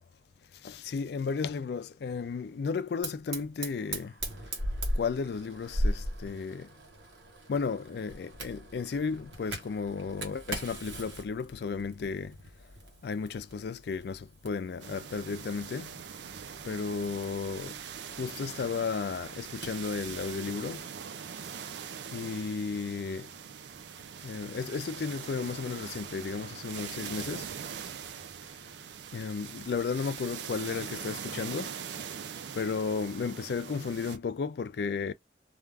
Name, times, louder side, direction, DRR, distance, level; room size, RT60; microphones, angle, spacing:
voice 1, 0.6-4.1 5.0-6.7 7.5-12.3 13.0-15.9 16.6-17.7 18.2-20.8 22.1-23.3 24.2-27.5 29.1-31.7 32.5-35.1, left 5 dB, 60° left, 0.3 m, -34 dB
Fire, 3.0-20.4, right 1 dB, 90° right, 1.1 m, -39 dB
sound 1, 14.8-34.2, right 7 dB, 75° right, 0.4 m, -42 dB
2.4 x 2.2 x 3.3 m
head